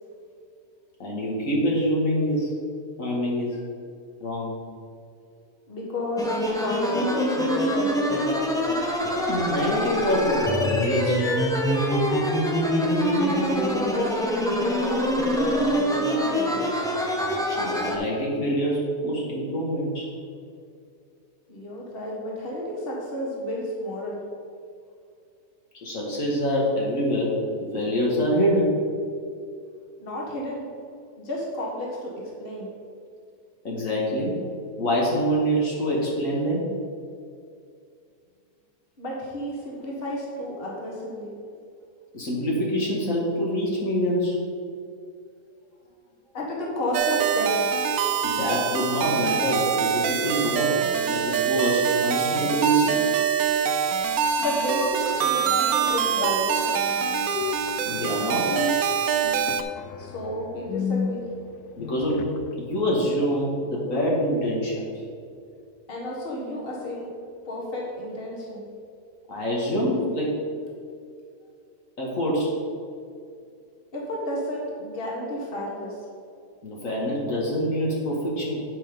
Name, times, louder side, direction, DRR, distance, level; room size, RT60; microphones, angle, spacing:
voice 1, 1.0-2.5 3.0-3.6 4.2-4.5 9.3-11.3 17.5-20.1 25.8-28.8 33.6-34.4 34.8-36.6 42.1-44.4 48.2-50.8 51.1-53.1 57.8-58.5 61.8-64.9 69.3-70.4 72.0-72.5 76.6-78.6, equal, 60° left, -4 dB, 1.9 m, -25 dB
voice 2, 5.7-8.2 12.8-16.9 21.5-24.2 30.0-30.7 31.2-32.7 39.0-41.3 46.3-47.7 54.4-56.5 60.0-61.2 65.9-67.1 67.5-68.7 73.9-76.0, equal, 40° left, -3 dB, 1.8 m, -31 dB
sound 1, 6.2-18.0, equal, 5° left, 0.6 m, -24 dB
sound 2, 46.9-59.6, right 7 dB, 75° right, 1.0 m, -24 dB
sound 3, 54.0-62.6 63.0-63.1, left 6 dB, 85° left, 1.1 m, -34 dB
9.5 x 5.6 x 5.2 m, 2.4 s
omnidirectional pair, 1.6 m